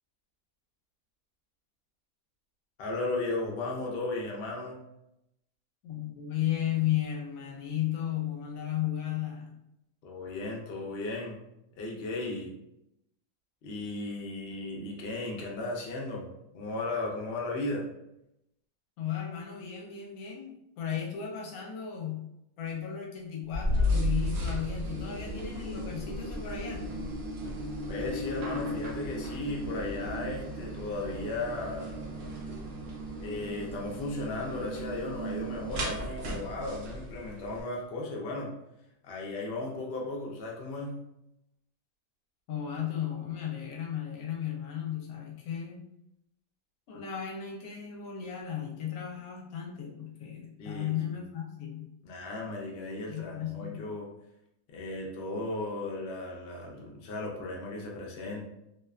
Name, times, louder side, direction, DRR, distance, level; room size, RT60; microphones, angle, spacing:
voice 1, 2.8-4.8 10.0-11.4 11.8-12.5 13.6-16.3 16.5-17.8 27.9-32.1 33.2-38.5 39.0-40.9 50.6-51.2 52.0-54.1 54.7-58.4, left 2 dB, 60° left, -2 dB, 0.7 m, -36 dB
voice 2, 5.8-9.6 19.0-22.2 22.6-26.9 42.5-45.8 46.9-51.9 53.1-53.8, left 10 dB, 75° left, -1 dB, 1.0 m, -35 dB
sound 1, 23.5-29.1, left 1 dB, 80° right, 1.0 m, -32 dB
sound 2, 23.7-37.6, right 1 dB, 60° right, 0.7 m, -38 dB
2.7 x 2.1 x 2.3 m, 0.83 s
omnidirectional pair, 1.5 m